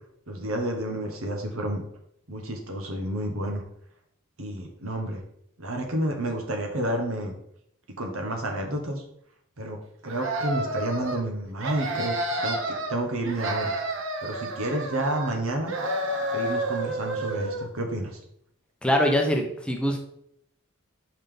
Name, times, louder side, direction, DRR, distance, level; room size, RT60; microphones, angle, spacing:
voice 1, 0.3-1.8 2.3-3.6 4.4-5.2 5.6-7.3 8.0-9.0 9.6-9.8 10.0-12.1 12.4-13.7 14.2-15.7 16.3-18.2, right 1 dB, 85° right, 3 dB, 1.3 m, -30 dB
sound 1, 10.1-11.2 11.6-13.0 13.2-15.4 15.7-17.7, right 1 dB, 65° right, 0.9 m, -30 dB
voice 2, 18.8-20.0, equal, 5° left, 2 dB, 0.7 m, -23 dB
5.4 x 5.2 x 3.8 m, 0.72 s
head